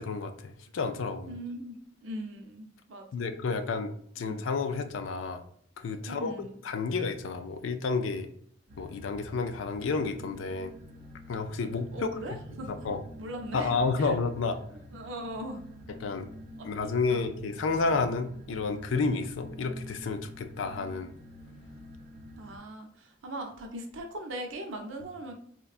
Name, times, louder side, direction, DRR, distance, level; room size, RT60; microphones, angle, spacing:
voice 1, 0.0-1.3 3.1-5.4 5.8-8.3 8.8-10.7 11.3-11.9 12.7-13.0 13.5-14.6 16.0-16.3 16.6-21.1, left 4 dB, 80° left, 8 dB, 0.4 m, -31 dB
voice 2, 1.3-3.3 4.2-4.4 6.0-6.5 11.9-12.8 13.2-14.2 14.9-15.6 16.6-17.2 22.4-25.3, right 1 dB, 85° right, 3 dB, 0.6 m, -40 dB
sound 1, 8.7-22.6, equal, 45° right, 0.6 m, -48 dB
3.6 x 2.2 x 2.4 m, 0.63 s
head